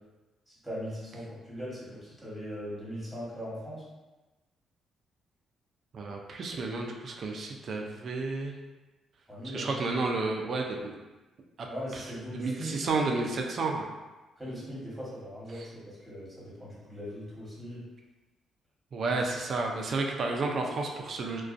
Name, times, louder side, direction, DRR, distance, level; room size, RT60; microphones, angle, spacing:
voice 1, 0.5-3.8 9.3-9.8 11.7-12.7 14.4-17.8, equal, 5° right, -8 dB, 1.0 m, -40 dB
voice 2, 5.9-8.5 9.4-11.0 11.6-11.7 11.9-12.0 12.4-13.8 15.5-15.7 18.9-21.4, right 3 dB, 50° right, 1 dB, 0.3 m, -31 dB
2.4 x 2.2 x 2.5 m, 1.1 s
cardioid pair, 105°, 0 cm